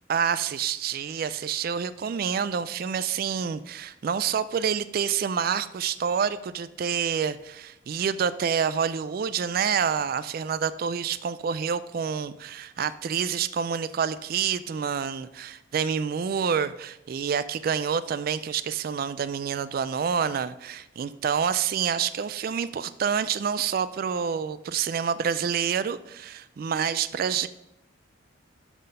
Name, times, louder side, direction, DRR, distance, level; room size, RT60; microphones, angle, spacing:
voice 1, 0.1-27.5, right 7 dB, 50° right, 15 dB, 0.3 m, -28 dB
12.0 x 4.1 x 5.3 m, 0.86 s
head